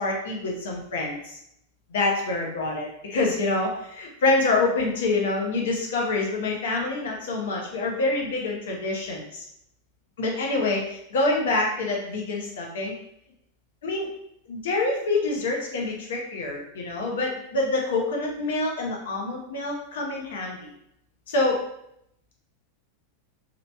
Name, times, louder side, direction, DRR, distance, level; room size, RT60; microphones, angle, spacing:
voice 1, 0.0-1.4 1.9-9.4 10.2-12.9 13.8-14.1 14.5-20.7 21.3-21.7, left 2 dB, 80° left, -1 dB, 0.8 m, -26 dB
2.9 x 2.6 x 2.2 m, 0.77 s
supercardioid pair, 125°, 0 cm